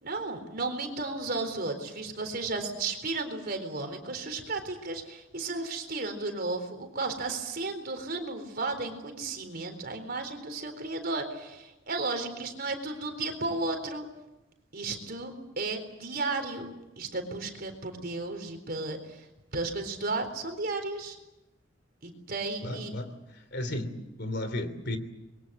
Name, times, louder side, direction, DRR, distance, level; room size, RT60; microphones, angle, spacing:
voice 1, 0.0-14.1 14.7-19.3 19.5-21.2 22.0-22.9, right 3 dB, 55° right, 7 dB, 4.0 m, -34 dB
voice 2, 22.6-23.1 23.5-25.0, left 1 dB, 60° left, 10 dB, 3.1 m, -33 dB
26.0 x 22.5 x 7.6 m, 0.99 s
head